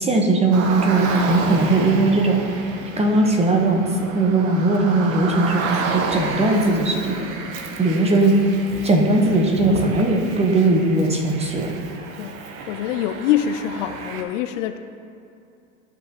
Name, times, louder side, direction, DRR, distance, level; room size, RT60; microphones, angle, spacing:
voice 1, 0.0-2.4 3.0-7.1 7.8-8.4 8.8-11.7, right 2 dB, 15° right, 2 dB, 1.0 m, -19 dB
Car, 0.5-14.2, right 4 dB, 70° right, 1.0 m, -31 dB
voice 2, 12.7-14.8, left 10 dB, 60° left, 10 dB, 0.5 m, -24 dB
12.5 x 5.3 x 3.0 m, 2.5 s
hypercardioid pair, 100°, 42 cm